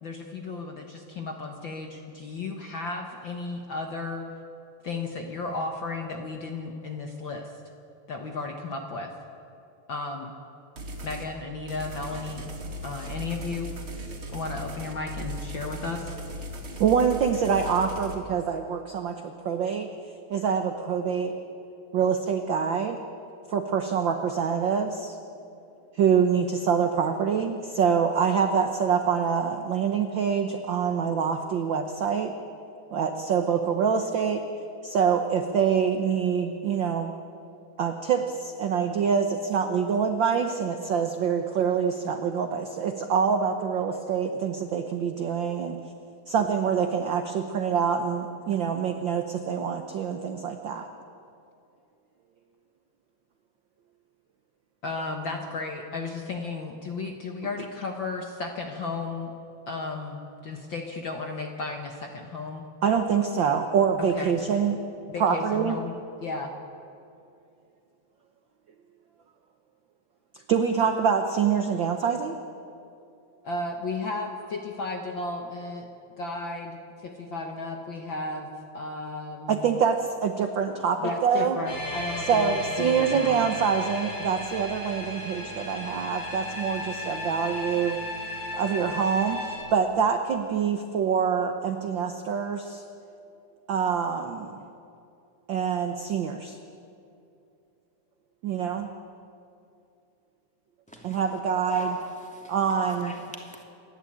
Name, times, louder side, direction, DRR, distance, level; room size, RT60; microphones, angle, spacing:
voice 1, 0.0-4.3 4.8-7.5 8.1-9.1 9.9-10.3 11.0-12.5 12.8-13.7 14.3-16.2 54.8-59.3 59.7-62.6 64.1-64.3 65.1-65.9 66.2-66.5 73.4-75.9 76.2-78.5 78.7-79.7 81.0-83.4, left 3 dB, 50° left, 3 dB, 1.6 m, -34 dB
sound 1, 10.8-11.3 11.7-18.1, right 1 dB, 45° right, 3.2 m, -37 dB
voice 2, 16.8-19.9 20.3-21.4 21.9-23.0 23.5-25.2 26.0-32.3 32.9-34.4 34.8-37.1 37.8-45.8 46.3-50.9 62.8-64.8 65.2-65.8 70.5-72.3 79.5-81.6 82.3-88.0 88.5-89.4 89.7-92.8 93.7-94.6 95.5-96.6 98.4-98.9 101.0-101.9 102.5-103.1, right 7 dB, 70° right, 6 dB, 1.1 m, -25 dB
sound 2, 81.7-89.6, left 1 dB, 90° left, 8.4 m, -35 dB
voice 3, 100.9-101.2 101.7-103.6, equal, 5° left, 0 dB, 2.3 m, -37 dB
28.0 x 12.0 x 8.7 m, 2.6 s
omnidirectional pair, 3.4 m